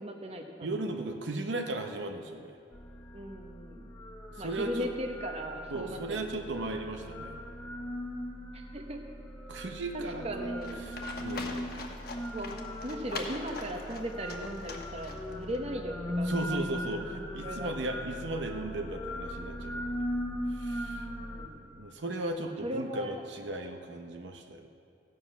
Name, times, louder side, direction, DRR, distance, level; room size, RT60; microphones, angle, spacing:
voice 1, 0.0-0.9 3.1-3.9 4.4-6.7 8.5-9.0 9.9-10.8 12.3-12.5 12.8-17.0 17.4-18.0 21.1-21.7 22.6-23.2, equal, 35° right, 3 dB, 1.0 m, -38 dB
voice 2, 0.6-2.6 4.4-4.9 5.7-7.4 9.5-10.5 10.8-11.7 16.3-20.1 20.5-21.1 21.7-24.7, right 2 dB, 80° right, 4 dB, 0.8 m, -36 dB
sound 1, 2.7-21.5, equal, 10° left, 0.8 m, -39 dB
Livestock farm animals working animals, 10.6-15.6, left 3 dB, 55° left, 1.1 m, -43 dB
15.5 x 7.6 x 5.9 m, 2.5 s
head